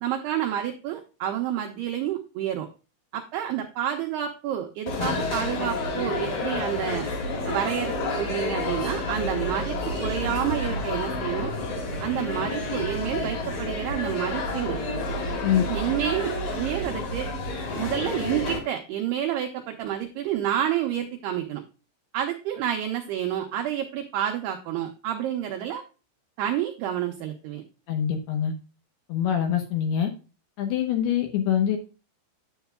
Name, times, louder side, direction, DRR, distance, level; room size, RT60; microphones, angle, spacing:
voice 1, 0.0-2.7 3.1-7.1 7.5-11.5 12.0-14.8 15.7-17.3 17.8-21.6 22.1-25.8 26.4-27.6, right 11 dB, 85° right, 3 dB, 2.3 m, -29 dB
sound 1, 4.9-18.6, left 2 dB, 50° left, 3.3 m, -30 dB
voice 2, 27.9-28.5 29.1-30.1 30.6-31.8, left 9 dB, 75° left, 4 dB, 2.5 m, -24 dB
10.0 x 8.0 x 2.2 m, 0.33 s
omnidirectional pair, 5.5 m